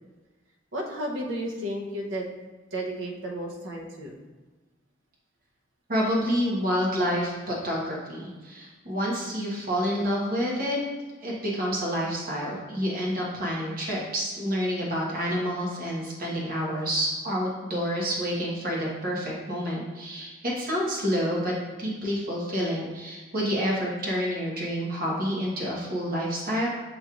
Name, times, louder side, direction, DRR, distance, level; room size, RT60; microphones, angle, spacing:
voice 1, 0.7-2.3 2.7-4.1, right 1 dB, 75° right, 0 dB, 0.7 m, -33 dB
voice 2, 5.9-10.8 11.2-21.5 21.8-26.7, equal, 50° right, -4 dB, 1.1 m, -28 dB
6.5 x 3.0 x 2.4 m, 1.3 s
head